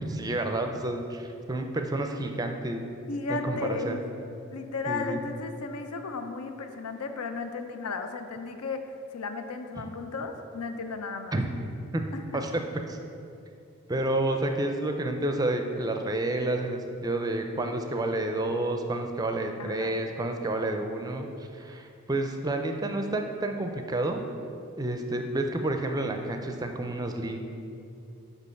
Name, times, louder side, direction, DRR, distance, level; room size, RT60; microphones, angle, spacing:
voice 1, 0.1-2.9 3.3-4.0 4.9-5.2 9.8-9.9 11.3-11.5 11.9-12.1 12.3-12.5 12.9-13.0 13.9-21.3 21.5-24.2 24.8-27.4, right 2 dB, 15° right, 5 dB, 0.4 m, -30 dB
voice 2, 3.1-4.0 4.5-11.4 12.3-12.4 19.6-20.0, left 4 dB, 85° left, 7 dB, 0.6 m, -34 dB
5.3 x 5.1 x 6.3 m, 2.6 s
head